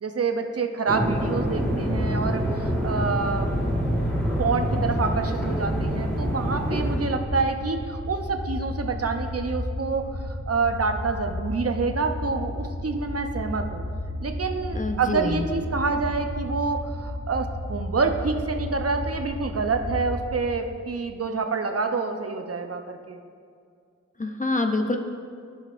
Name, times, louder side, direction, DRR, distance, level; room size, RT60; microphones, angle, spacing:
voice 1, 0.0-3.5 4.4-13.8 14.2-23.2, right 4 dB, 55° right, 6 dB, 0.7 m, -27 dB
sound 1, 0.9-7.0, equal, 5° left, 1.6 m, -26 dB
sound 2, 1.4-20.4, left 1 dB, 70° left, 1.3 m, -33 dB
voice 2, 14.8-15.4 24.2-25.0, left 2 dB, 25° left, 5 dB, 0.6 m, -26 dB
14.0 x 5.4 x 2.5 m, 2.2 s
wide cardioid pair, 50°, 29 cm